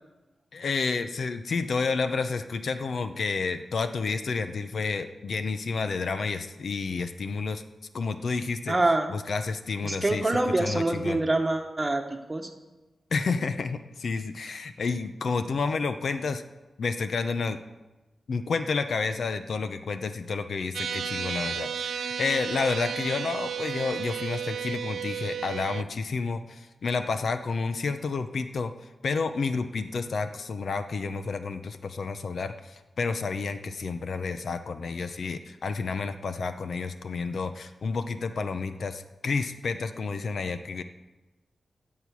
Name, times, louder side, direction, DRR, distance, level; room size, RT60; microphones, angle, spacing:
voice 1, 0.5-7.6 7.9-8.8 9.1-10.2 10.6-11.2 13.1-16.4 16.8-17.6 18.3-28.7 29.0-40.8, left 4 dB, 60° left, 9 dB, 0.7 m, -30 dB
voice 2, 8.7-9.1 9.8-12.5, right 2 dB, 20° right, 5 dB, 1.3 m, -25 dB
sound 1, 20.7-25.8, right 7 dB, 80° right, 0.4 m, -33 dB
11.0 x 7.6 x 8.3 m, 1.1 s
wide cardioid pair, 135°, 0 cm